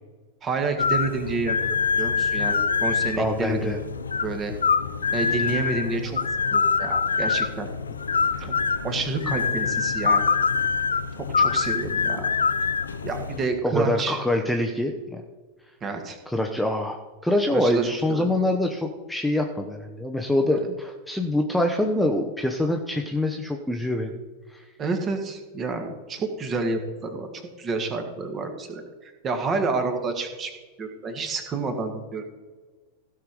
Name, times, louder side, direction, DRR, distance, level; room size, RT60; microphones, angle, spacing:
voice 1, 0.4-1.6 2.0-3.7 4.2-4.5 5.1-7.7 8.4-8.5 8.8-10.2 11.2-12.3 13.0-14.2 15.8-16.2 17.5-18.3 24.8-27.3 27.6-30.5 30.8-32.2, right 3 dB, 25° right, 6 dB, 1.9 m, -29 dB
sound 1, 0.8-13.5, left 5 dB, 70° left, 0.6 m, -25 dB
voice 2, 3.2-3.8 13.6-15.2 16.3-24.2 24.5-24.6, left 1 dB, ahead, 2 dB, 0.9 m, -25 dB
16.0 x 5.9 x 4.9 m, 1.4 s
figure-of-eight pair, 90°, 0 cm